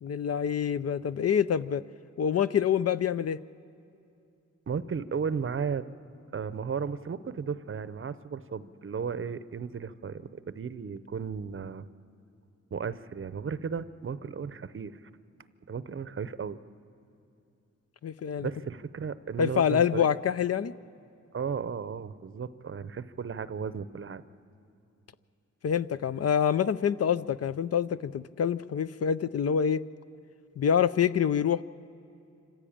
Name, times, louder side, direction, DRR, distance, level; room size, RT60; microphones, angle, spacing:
voice 1, 0.0-1.8 2.2-3.4 18.0-18.5 19.4-20.7 25.6-29.8 30.6-31.6, left 8 dB, 55° left, 15 dB, 0.5 m, -26 dB
voice 2, 4.7-5.8 6.3-11.9 12.7-15.0 15.7-16.6 18.4-20.2 21.3-24.2, right 6 dB, 45° right, 14 dB, 0.7 m, -35 dB
26.0 x 15.5 x 8.6 m, 2.7 s
wide cardioid pair, 105°, 30 cm